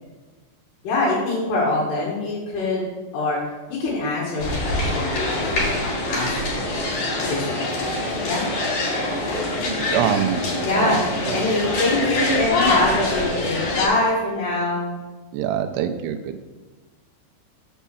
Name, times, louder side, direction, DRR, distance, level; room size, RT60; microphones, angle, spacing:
voice 1, 0.8-2.8 3.1-3.4 3.7-6.3 6.5-6.8 7.3-7.6 8.2-8.4 10.6-14.9, left 2 dB, 70° left, -5 dB, 3.6 m, -24 dB
sound 1, 4.4-13.9, left 2 dB, 55° left, 3.2 m, -24 dB
voice 2, 9.7-10.4 10.7-11.4 15.3-16.4, right 9 dB, 80° right, 6 dB, 2.4 m, -25 dB
7.3 x 5.6 x 6.9 m, 1.2 s
omnidirectional pair, 5.1 m